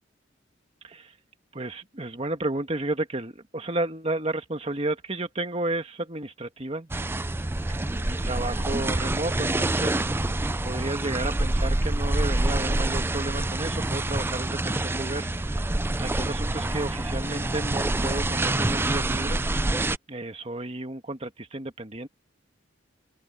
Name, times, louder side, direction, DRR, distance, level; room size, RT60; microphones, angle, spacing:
voice 1, 1.5-6.9 7.7-7.8 8.0-10.3 10.6-15.7 16.0-19.5 20.1-22.1, right 2 dB, 30° right, 1.9 m, -32 dB
sound 1, 6.9-20.0, right 2 dB, 10° right, 0.4 m, -26 dB
open air
head